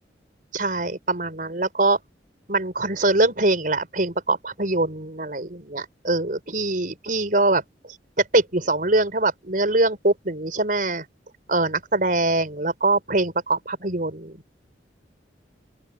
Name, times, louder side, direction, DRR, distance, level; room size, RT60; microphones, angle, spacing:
voice 1, 0.5-2.0 2.5-7.6 8.3-11.0 11.5-14.4, right 2 dB, 50° right, 5.1 m, -23 dB
open air
head